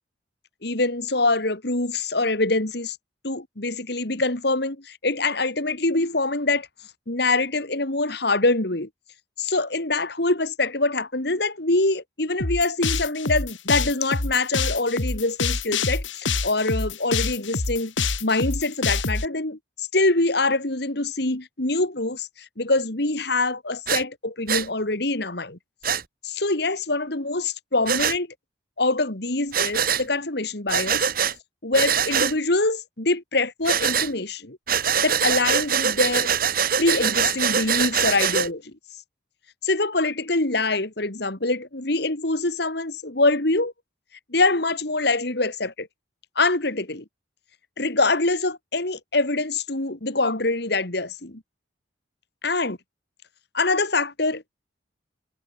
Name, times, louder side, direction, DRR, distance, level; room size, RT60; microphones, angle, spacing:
voice 1, 0.6-3.0 3.2-6.7 7.1-8.9 9.4-22.3 22.6-25.6 26.2-28.3 28.8-31.0 31.6-34.6 35.0-36.3 36.8-38.7 39.6-43.7 44.3-45.9 46.4-47.0 47.8-51.4 52.4-52.8 53.5-54.4, left 2 dB, 55° left, 2.2 m, -24 dB
sound 1, 12.4-19.2, left 3 dB, 75° left, 2.6 m, -26 dB
Breathing, 23.9-24.0 24.5-24.7 25.8-26.0 27.9-28.2 29.5-30.0 30.7-31.3 31.7-32.3 33.6-34.1 34.7-38.5, right 7 dB, 45° right, 2.0 m, -23 dB
head